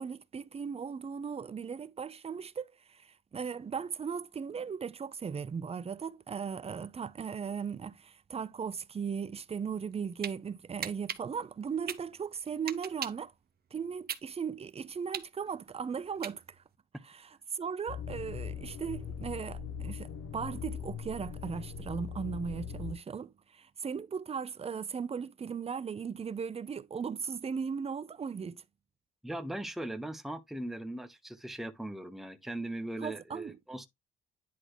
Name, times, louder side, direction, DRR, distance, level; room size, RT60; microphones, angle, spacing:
voice 1, 0.0-13.3 13.7-16.4 17.0-28.6 33.0-33.6, right 6 dB, 30° right, 0.6 m, -37 dB
sound 1, 9.8-10.3 10.8-13.3 13.7-16.7, right 8 dB, 50° right, 0.9 m, -39 dB
sound 2, 17.9-22.9, left 7 dB, 80° left, 1.1 m, -40 dB
voice 2, 29.2-33.9, right 1 dB, ahead, 1.0 m, -39 dB
10.5 x 4.0 x 3.0 m
cardioid pair, 90°, 20 cm